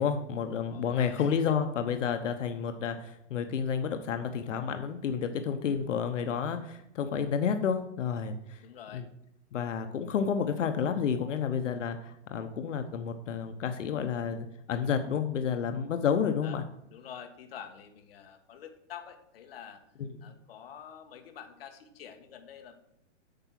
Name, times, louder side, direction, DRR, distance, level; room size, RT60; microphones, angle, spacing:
voice 1, 0.0-8.6 8.9-9.0 9.5-16.6 20.0-20.1, left 7 dB, 80° left, 7 dB, 1.0 m, -30 dB
voice 2, 0.7-1.3 8.6-9.0 16.4-16.6 16.9-19.8 20.2-22.7, left 8 dB, 50° left, 6 dB, 1.3 m, -47 dB
8.7 x 5.9 x 5.9 m, 0.79 s
hypercardioid pair, 170°, 37 cm